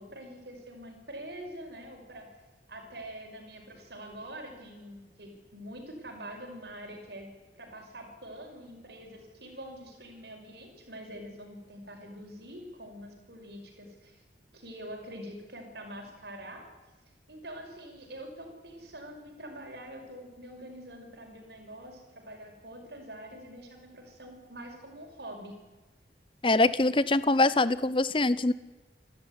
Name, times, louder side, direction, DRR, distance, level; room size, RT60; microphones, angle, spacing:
voice 1, 0.0-2.3 2.7-7.3 7.5-14.2 14.5-16.7 17.3-25.6, right 1 dB, 65° right, 3 dB, 5.7 m, -45 dB
voice 2, 26.4-28.5, left 2 dB, 30° left, 17 dB, 0.7 m, -24 dB
28.5 x 13.0 x 9.7 m, 1.2 s
head